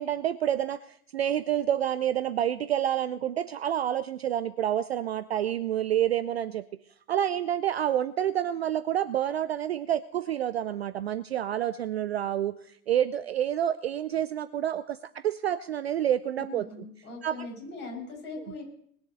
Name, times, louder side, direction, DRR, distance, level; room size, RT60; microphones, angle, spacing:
voice 1, 0.0-6.6 7.1-16.7 17.2-17.5, right 10 dB, 40° right, 14 dB, 0.5 m, -28 dB
voice 2, 16.4-18.6, left 3 dB, 20° left, 0 dB, 6.7 m, -40 dB
20.5 x 7.1 x 7.9 m, 0.69 s
figure-of-eight pair, 105°, 49 cm